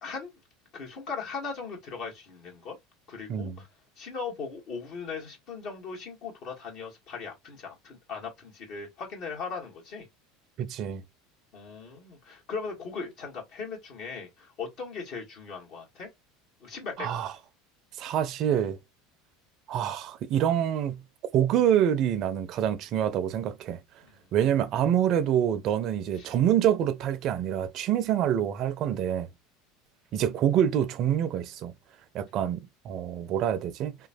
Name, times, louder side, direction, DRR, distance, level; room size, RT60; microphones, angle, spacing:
voice 1, 0.7-2.8 3.1-3.7 4.0-10.0 11.5-16.1 16.6-17.1 24.0-24.1 26.2-26.3, left 5 dB, 55° left, 1.4 m, -38 dB
voice 2, 3.3-3.6 10.6-11.0 17.0-17.4 18.0-18.8 19.7-21.0 21.3-23.8 24.3-29.3 30.1-31.7 32.1-34.0, right 10 dB, 50° right, 0.4 m, -26 dB
3.0 x 2.2 x 2.5 m
hypercardioid pair, 85°, 0 cm